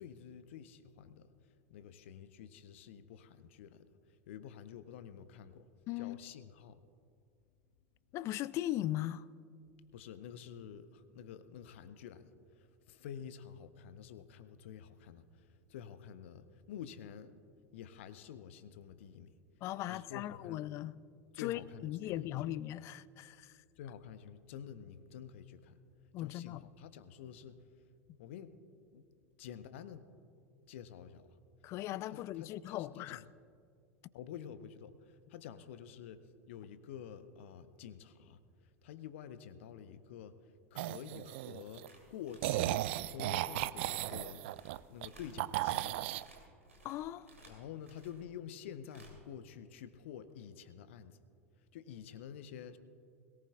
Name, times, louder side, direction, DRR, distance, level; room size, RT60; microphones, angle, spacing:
voice 1, 0.0-6.8 9.9-17.3 17.7-19.4 19.9-20.7 21.3-22.6 23.7-25.8 26.2-27.9 28.2-28.5 28.9-29.1 29.4-30.0 30.7-31.4 32.1-33.3 34.1-46.0 47.5-51.2 51.6-52.8, left 8 dB, 60° left, 0.8 m, -49 dB
voice 2, 5.9-6.2 8.1-9.3 19.6-21.0 21.4-23.5 26.1-26.6 31.6-33.2 46.8-47.3, left 14 dB, 40° left, 0.4 m, -38 dB
sound 1, 40.8-41.9 42.4-45.1 45.4-46.2, right 16 dB, 55° right, 0.3 m, -35 dB
sound 2, 41.9-48.3 48.8-49.3 50.4-50.5, right 2 dB, 80° right, 2.8 m, -60 dB
21.5 x 18.0 x 2.3 m
figure-of-eight pair, 80°, 8 cm